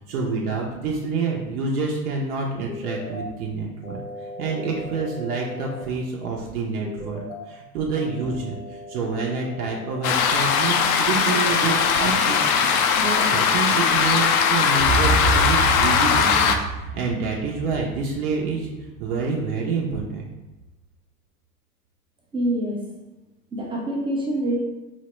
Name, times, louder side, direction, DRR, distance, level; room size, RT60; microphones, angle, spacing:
voice 1, 0.1-4.0 4.4-12.4 12.9-18.7 19.0-20.3, right 4 dB, 70° right, -1 dB, 0.7 m, -27 dB
sound 1, 2.7-3.3 3.8-5.8 6.8-7.4 7.9-9.9, left 1 dB, 80° left, 0.9 m, -37 dB
sound 2, 10.0-16.6, left 6 dB, 60° left, 0.5 m, -20 dB
sound 3, 14.8-19.0, right 4 dB, 35° right, 1.0 m, -27 dB
voice 2, 22.3-22.8 23.5-24.6, right 1 dB, 10° right, -2 dB, 0.5 m, -25 dB
4.2 x 2.1 x 2.9 m, 1.1 s
hypercardioid pair, 95°, 47 cm